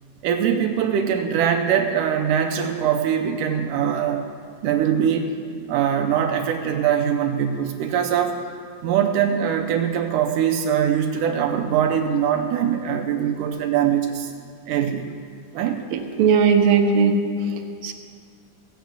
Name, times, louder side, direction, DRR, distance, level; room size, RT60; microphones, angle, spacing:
voice 1, 0.2-4.2 4.6-5.3 5.7-8.4 8.8-14.3 14.7-15.1 15.5-15.8, right 8 dB, 90° right, 4 dB, 1.9 m, -22 dB
voice 2, 15.9-17.1 17.8-17.9, right 6 dB, 75° right, 4 dB, 2.4 m, -17 dB
16.0 x 8.3 x 7.9 m, 2.2 s
omnidirectional pair, 4.5 m